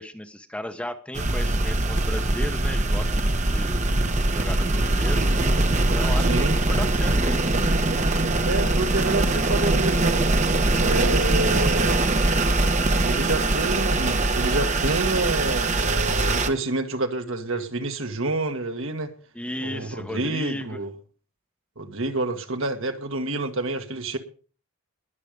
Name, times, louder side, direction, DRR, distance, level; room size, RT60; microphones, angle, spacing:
voice 1, 0.0-3.8 4.3-5.3 5.9-7.4 19.3-20.8, left 1 dB, 5° left, 0.9 m, -35 dB
sound 1, 1.1-16.5, right 2 dB, 30° right, 1.0 m, -22 dB
voice 2, 6.1-6.6 8.4-10.3 10.8-12.0 13.0-19.1 19.6-20.9 21.8-24.2, right 2 dB, 65° right, 1.7 m, -28 dB
21.5 x 7.4 x 5.1 m
head